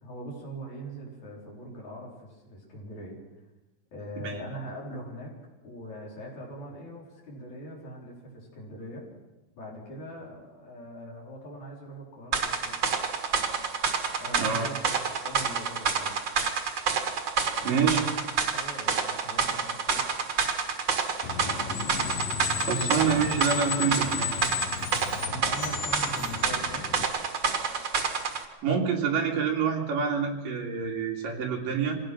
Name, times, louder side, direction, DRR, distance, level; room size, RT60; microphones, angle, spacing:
voice 1, 0.0-3.2 3.9-5.4 5.6-9.1 9.6-12.8 14.2-16.1 17.6-18.0 18.5-20.0 25.3-26.9, equal, 45° left, -2 dB, 5.3 m, -41 dB
sound 1, 12.3-28.4, right 5 dB, 75° right, 1.0 m, -28 dB
voice 2, 17.6-18.0 22.7-24.4 28.6-32.0, right 6 dB, 60° right, 0 dB, 4.0 m, -27 dB
Screech, 21.2-27.0, left 8 dB, 70° left, 2.9 m, -34 dB
25.0 x 17.5 x 6.1 m, 1.1 s
omnidirectional pair, 4.6 m